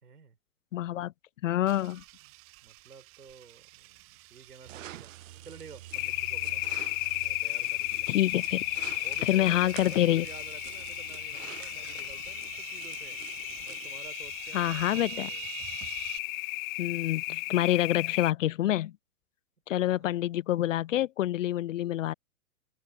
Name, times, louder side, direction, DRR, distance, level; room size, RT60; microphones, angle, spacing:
voice 1, 0.0-0.4 2.2-2.3 2.6-5.1 5.4-6.6 7.2-8.1 9.0-13.2 13.7-15.6 19.7-20.3, right 5 dB, 80° right, 3.0 m, -51 dB
voice 2, 0.7-1.1 1.4-2.0 8.1-8.6 9.3-10.3 14.5-15.3 16.8-18.9 19.7-22.1, left 13 dB, 55° left, 0.5 m, -27 dB
sound 1, 1.7-16.2, right 22 dB, 30° right, 1.6 m, -46 dB
sound 2, 4.7-14.0, right 13 dB, 55° right, 0.7 m, -48 dB
sound 3, 5.9-18.3, left 25 dB, 30° left, 0.8 m, -34 dB
open air
figure-of-eight pair, 105°, 45 cm